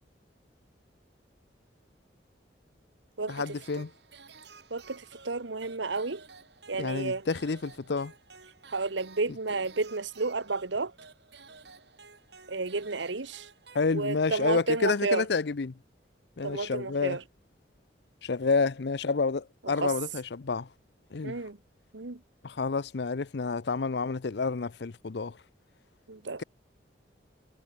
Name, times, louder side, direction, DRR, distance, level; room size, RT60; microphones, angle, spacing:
voice 1, 3.3-3.9 6.8-8.1 13.7-15.7 16.4-17.2 18.2-20.7 21.1-21.4 22.4-25.4, left 4 dB, 65° left, 0.6 m, -29 dB
sound 1, 3.3-14.4, right 4 dB, 70° right, 6.7 m, -53 dB
voice 2, 4.7-6.2 6.7-7.3 8.7-10.9 12.5-13.5 13.9-15.2 16.4-17.2 19.6-19.9 21.2-21.6 21.9-22.2 26.1-26.4, right 3 dB, 85° right, 1.3 m, -31 dB
head